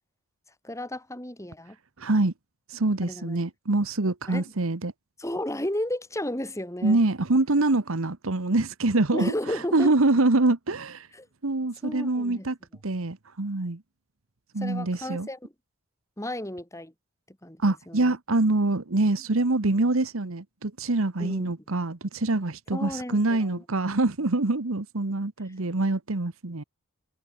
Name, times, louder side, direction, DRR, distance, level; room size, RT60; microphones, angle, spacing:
voice 1, 0.6-1.8 3.0-3.4 4.3-4.5 5.2-7.0 9.1-9.9 11.1-11.3 11.8-12.5 14.6-15.5 16.2-16.9 17.3-18.2 21.2-21.5 22.7-23.6, left 1 dB, 15° left, 4.3 m, -33 dB
voice 2, 2.0-2.3 2.7-4.9 6.8-9.3 9.7-11.1 11.4-12.6 12.8-13.8 14.5-15.3 17.6-26.6, right 2 dB, 75° right, 1.3 m, -25 dB
head